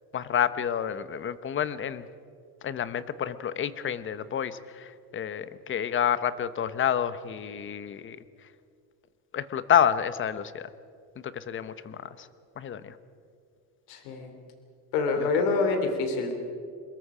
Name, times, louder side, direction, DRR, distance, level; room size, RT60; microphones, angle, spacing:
voice 1, 0.1-2.1 2.6-8.2 9.3-10.7 11.2-12.3 12.6-13.0 15.2-15.3, left 9 dB, 30° left, 14 dB, 1.0 m, -29 dB
voice 2, 13.9-14.3 14.9-16.3, left 4 dB, 85° left, 5 dB, 3.4 m, -26 dB
26.5 x 22.0 x 5.1 m, 2.3 s
cardioid pair, 135°, 42 cm